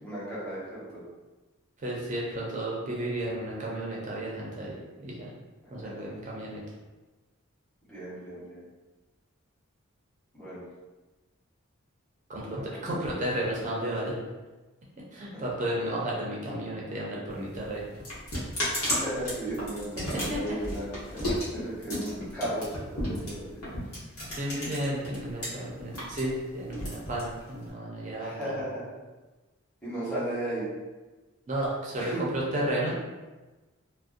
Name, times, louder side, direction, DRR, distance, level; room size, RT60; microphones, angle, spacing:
voice 1, 0.0-1.0 5.8-6.1 7.9-8.7 10.3-10.6 12.6-12.9 15.3-15.4 18.9-23.6 28.2-28.9 29.8-30.7 32.0-32.2, right 1 dB, 5° left, -12 dB, 1.0 m, -36 dB
voice 2, 1.8-5.3 5.7-6.6 12.3-14.2 15.1-17.8 20.0-20.6 24.2-28.6 31.5-32.9, right 1 dB, 35° right, -4 dB, 0.4 m, -33 dB
sound 1, 17.3-25.5 25.8-27.7, equal, 85° left, 0.9 m, -33 dB
2.5 x 2.1 x 2.4 m, 1.2 s
head